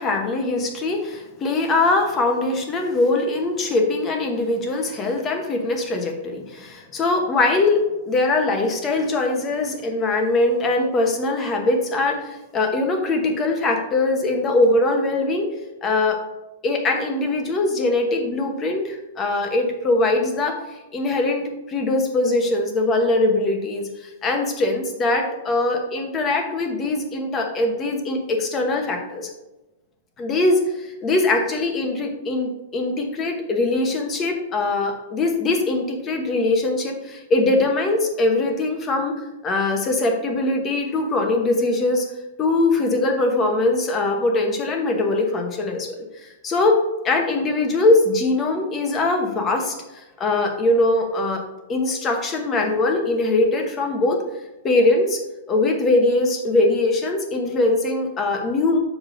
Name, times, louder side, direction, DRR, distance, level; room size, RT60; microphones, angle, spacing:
voice 1, 0.0-15.5 15.8-16.2 16.6-29.3 30.2-39.2 39.4-42.1 42.4-46.8 47.0-51.4 51.7-54.2 54.6-55.2 55.5-58.8, left 2 dB, 20° left, 3 dB, 1.0 m, -22 dB
7.1 x 5.1 x 3.8 m, 1.0 s
supercardioid pair, 160°, 0 cm